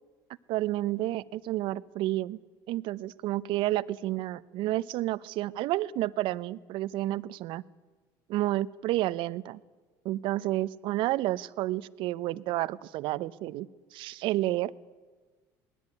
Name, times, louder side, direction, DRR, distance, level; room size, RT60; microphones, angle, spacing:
voice 1, 0.5-2.4 2.7-7.6 8.3-9.6 10.0-14.7, right 15 dB, 65° right, 18 dB, 0.7 m, -30 dB
19.5 x 17.5 x 9.6 m, 1.4 s
supercardioid pair, 95°, 9 cm